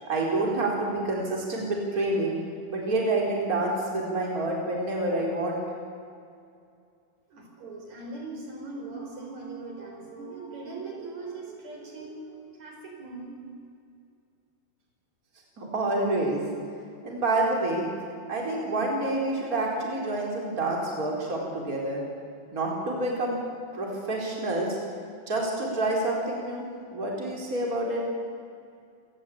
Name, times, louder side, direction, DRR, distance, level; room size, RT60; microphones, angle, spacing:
voice 1, 0.0-2.4 2.7-5.6 15.6-16.5 17.0-17.9 18.3-22.0 22.5-23.4 23.7-24.8 25.3-28.0, right 2 dB, 25° right, -2 dB, 4.7 m, -28 dB
voice 2, 7.3-13.4, right 3 dB, 65° right, 0 dB, 6.0 m, -40 dB
28.0 x 18.5 x 8.7 m, 2.4 s
omnidirectional pair, 3.5 m